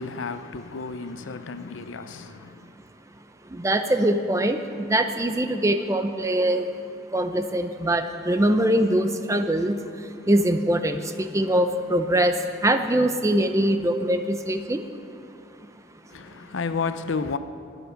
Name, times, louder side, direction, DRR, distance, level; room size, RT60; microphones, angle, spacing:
voice 1, 0.0-2.5 16.1-17.4, left 4 dB, 85° left, 0.6 m, -31 dB
voice 2, 3.5-6.7 7.1-14.9, right 1 dB, 15° right, 0.6 m, -23 dB
20.0 x 8.1 x 5.8 m
head